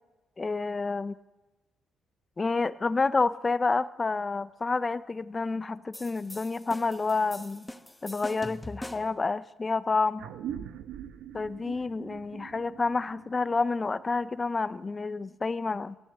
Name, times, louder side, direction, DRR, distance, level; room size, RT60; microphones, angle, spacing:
voice 1, 0.4-1.1 2.4-7.7 8.0-10.3 11.3-16.0, left 3 dB, 25° left, 15 dB, 0.6 m, -29 dB
sound 1, 5.9-9.2, left 1 dB, 10° left, 1.2 m, -43 dB
sound 2, 10.2-15.1, right 9 dB, 85° right, 1.1 m, -43 dB
23.0 x 14.0 x 7.9 m, 1.1 s
cardioid pair, 90°, 0 cm